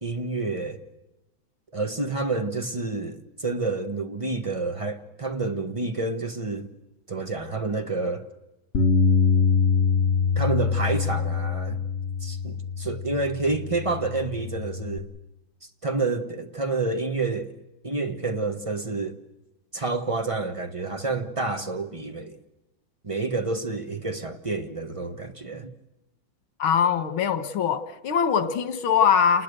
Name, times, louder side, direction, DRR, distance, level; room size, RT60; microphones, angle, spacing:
voice 1, 0.0-0.8 1.7-6.7 7.1-8.3 10.4-11.8 12.2-15.1 15.8-17.5 17.8-19.2 19.7-22.4 23.0-25.7, right 3 dB, 20° right, 1.1 m, -29 dB
Bass guitar, 8.7-15.0, left 5 dB, 35° left, 1.7 m, -24 dB
voice 2, 26.6-29.4, left 7 dB, 90° left, 2.2 m, -22 dB
28.5 x 20.5 x 6.8 m
omnidirectional pair, 2.2 m